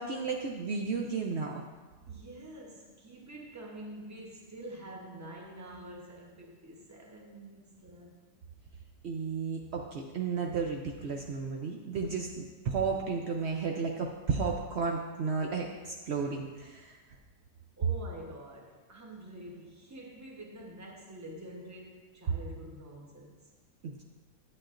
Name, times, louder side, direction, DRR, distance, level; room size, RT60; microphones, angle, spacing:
voice 1, 0.0-1.6 9.0-17.0 23.8-24.0, right 5 dB, 85° right, 0 dB, 0.5 m, -33 dB
voice 2, 2.1-8.2 17.8-23.5, right 1 dB, 15° right, -1 dB, 0.7 m, -47 dB
10.5 x 8.0 x 2.5 m, 1.3 s
omnidirectional pair, 1.9 m